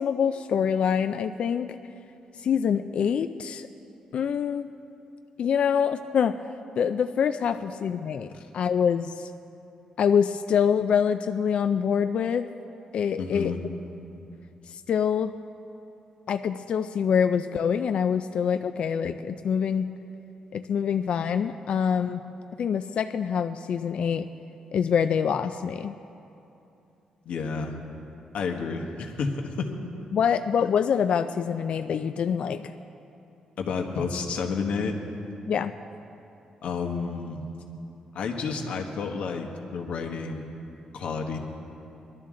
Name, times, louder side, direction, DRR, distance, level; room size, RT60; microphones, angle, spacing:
voice 1, 0.0-1.7 2.4-3.7 4.1-4.7 5.4-6.3 6.8-8.3 8.5-9.3 10.0-12.5 12.9-13.5 14.7-15.3 16.3-19.9 20.5-22.2 22.6-24.3 24.7-26.0 30.1-32.7 35.5-35.7, left 7 dB, 55° left, 9 dB, 0.3 m, -25 dB
voice 2, 13.2-13.6 27.2-27.7 28.3-29.7 33.6-34.9 36.6-37.5 38.1-40.4 40.9-41.4, left 5 dB, 70° left, 3 dB, 1.4 m, -30 dB
21.0 x 12.0 x 3.7 m, 2.8 s
cardioid pair, 145°, 2 cm